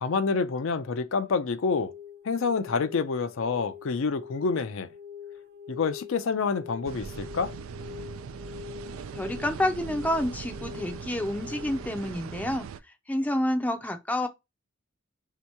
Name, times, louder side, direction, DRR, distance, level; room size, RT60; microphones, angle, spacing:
voice 1, 0.0-1.9 2.2-4.9 5.7-7.5, left 4 dB, 65° left, 0.5 m, -27 dB
sound 1, 1.6-12.1, left 8 dB, 50° right, 0.7 m, -45 dB
sound 2, 6.8-12.8, right 6 dB, 75° right, 0.3 m, -40 dB
voice 2, 9.1-12.6 13.1-14.3, left 1 dB, 5° left, 0.5 m, -28 dB
3.5 x 2.9 x 4.5 m
head